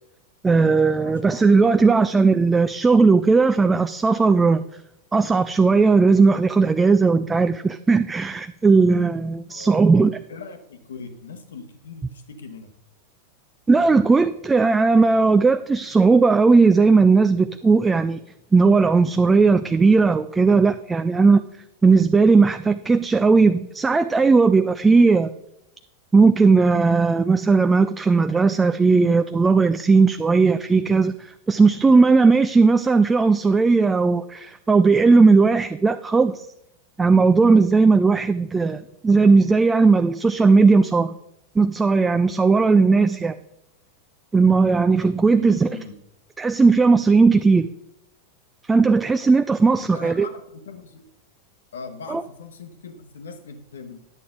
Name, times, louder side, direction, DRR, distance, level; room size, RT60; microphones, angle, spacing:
voice 1, 0.4-4.6 5.1-10.1 13.7-18.2 18.5-21.4 21.8-25.3 26.1-36.5 37.0-41.1 41.6-43.4 44.3-45.7 46.4-47.7 48.7-50.3 52.1-52.2, right 4 dB, 15° right, 11 dB, 0.3 m, -17 dB
voice 2, 1.5-1.9 9.5-12.7 45.3-45.9 49.8-51.1 51.7-54.0, left 5 dB, 65° left, 9 dB, 1.1 m, -40 dB
10.5 x 8.2 x 3.8 m, 0.83 s
figure-of-eight pair, 90°, 0 cm